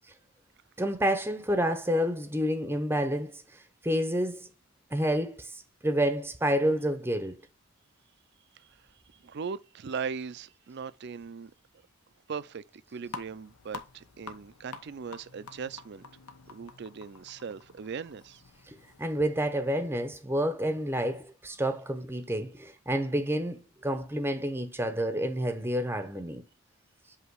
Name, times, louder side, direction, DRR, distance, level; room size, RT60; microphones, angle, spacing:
voice 1, 0.8-4.5 4.9-5.5 5.8-7.4 18.7-26.4, equal, 10° right, 0.7 m, -29 dB
voice 2, 9.2-11.5 12.3-16.1 16.5-18.4, right 6 dB, 50° right, 0.4 m, -39 dB
sound 1, 13.1-19.2, left 5 dB, 90° left, 1.0 m, -47 dB
8.1 x 2.9 x 4.6 m
head